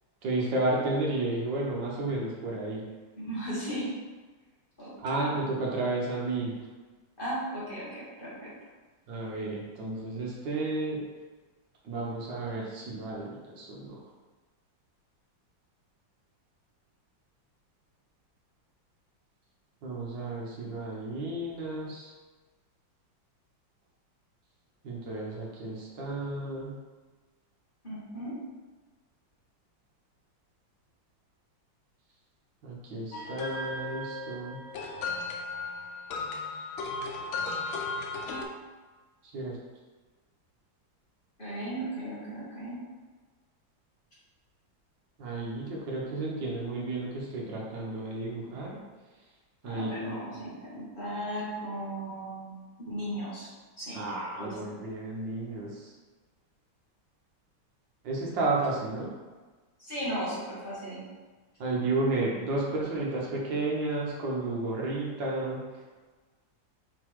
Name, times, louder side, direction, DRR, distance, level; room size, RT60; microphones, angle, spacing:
voice 1, 0.2-2.9 5.0-6.6 9.1-11.0 11.8-14.0 19.8-22.1 24.8-26.8 32.6-34.6 39.2-39.6 45.2-48.8 49.6-50.2 53.9-56.0 58.0-59.1 61.6-65.8, right 2 dB, 70° right, -3 dB, 1.8 m, -32 dB
voice 2, 3.2-3.9 4.8-5.2 7.2-8.5 27.8-28.4 41.4-42.8 49.6-54.0 54.4-54.6 59.8-61.0, right 1 dB, 25° left, -10 dB, 2.1 m, -36 dB
sound 1, 33.1-38.4, left 3 dB, 90° left, 1.5 m, -35 dB
5.1 x 4.1 x 4.7 m, 1.3 s
omnidirectional pair, 2.1 m